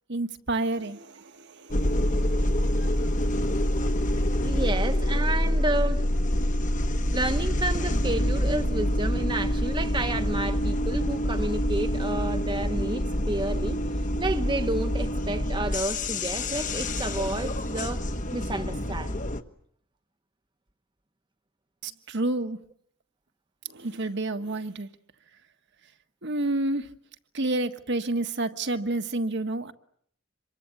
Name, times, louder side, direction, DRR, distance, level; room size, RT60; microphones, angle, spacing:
voice 1, 0.1-2.9 3.3-4.3 21.8-22.6 23.7-24.9 26.2-26.9 27.3-29.7, right 2 dB, 55° right, 1.5 m, -30 dB
sound 1, 1.7-19.4, equal, 40° left, 1.3 m, -26 dB
voice 2, 4.4-6.0 7.1-13.8 14.2-19.2, right 2 dB, 25° right, 1.1 m, -31 dB
27.0 x 23.5 x 8.7 m
head